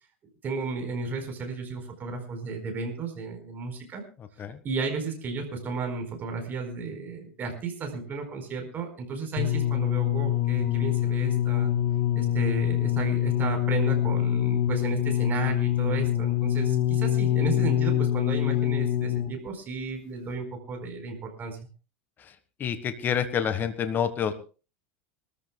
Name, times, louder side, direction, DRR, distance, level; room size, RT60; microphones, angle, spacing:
voice 1, 0.4-4.0 4.6-11.7 12.1-21.6, right 4 dB, 30° right, 4 dB, 4.5 m, -33 dB
sound 1, 9.4-19.5 20.3-20.4, left 12 dB, 55° left, 2.4 m, -25 dB
voice 2, 22.2-24.3, left 8 dB, 30° left, 11 dB, 1.4 m, -28 dB
25.0 x 14.0 x 2.3 m, 0.34 s
supercardioid pair, 130°, 7 cm